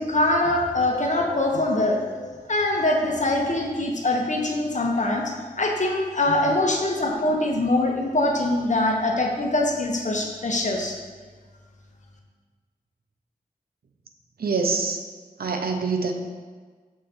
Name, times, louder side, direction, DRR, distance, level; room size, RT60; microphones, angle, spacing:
voice 1, 0.0-5.2 5.6-10.9, left 2 dB, 50° left, 0 dB, 1.1 m, -23 dB
voice 2, 6.3-6.6 14.4-15.0 15.4-16.1, right 4 dB, 75° right, 4 dB, 0.7 m, -26 dB
5.6 x 4.8 x 4.3 m, 1.5 s
cardioid pair, 45°, 16 cm